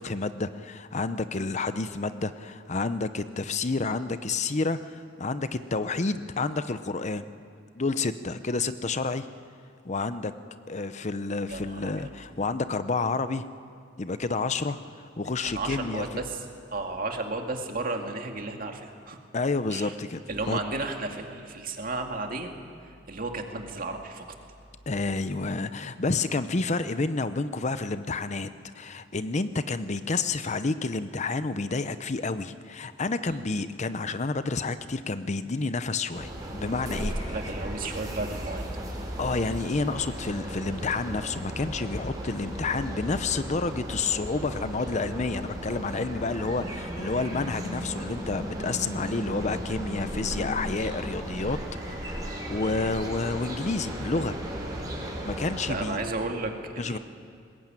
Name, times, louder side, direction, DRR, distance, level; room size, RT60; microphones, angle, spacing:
voice 1, 0.0-7.3 7.8-9.3 9.8-10.3 10.7-13.4 14.0-14.8 15.2-16.2 19.3-20.2 20.5-20.6 24.9-28.5 28.7-37.3 39.2-51.6 51.9-52.2 52.5-54.4 55.2-56.0 56.8-57.0, left 3 dB, 40° left, 12 dB, 0.7 m, -29 dB
voice 2, 11.5-12.1 15.4-16.4 16.7-19.2 19.7-19.9 20.3-22.5 22.8-24.3 33.3-33.4 37.3-38.6 52.6-52.7 55.7-57.0, right 2 dB, 50° right, 3 dB, 2.2 m, -33 dB
sound 1, 36.1-55.8, equal, 20° right, 4.8 m, -35 dB
21.5 x 20.0 x 9.0 m, 2.3 s
head